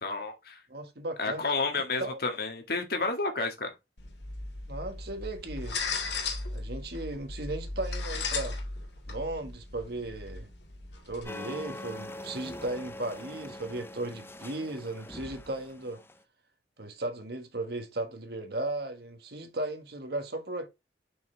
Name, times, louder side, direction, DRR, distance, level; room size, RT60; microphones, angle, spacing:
voice 1, 0.0-0.6 1.2-3.7, left 3 dB, 60° left, 1.7 m, -31 dB
voice 2, 0.7-1.4 2.0-2.2 4.7-5.8 6.5-8.6 9.1-10.5 11.1-16.0 16.8-20.7, right 2 dB, 65° right, 1.5 m, -36 dB
sound 1, 4.0-11.2, left 3 dB, 75° left, 2.0 m, -36 dB
sound 2, 11.2-16.2, left 1 dB, 15° left, 0.5 m, -43 dB
6.9 x 5.6 x 3.3 m
head